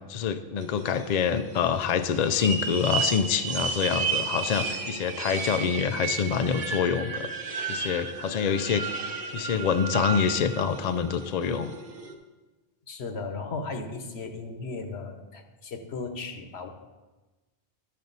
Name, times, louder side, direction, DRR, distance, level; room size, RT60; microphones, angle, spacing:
voice 1, 0.1-7.3 7.7-8.8 9.3-11.7, left 7 dB, 55° left, 10 dB, 0.5 m, -26 dB
sound 1, 0.6-12.1, right 5 dB, 70° right, 1.2 m, -33 dB
voice 2, 12.9-16.7, left 3 dB, 75° left, 6 dB, 1.2 m, -36 dB
12.5 x 6.6 x 4.0 m, 1.2 s
omnidirectional pair, 1.1 m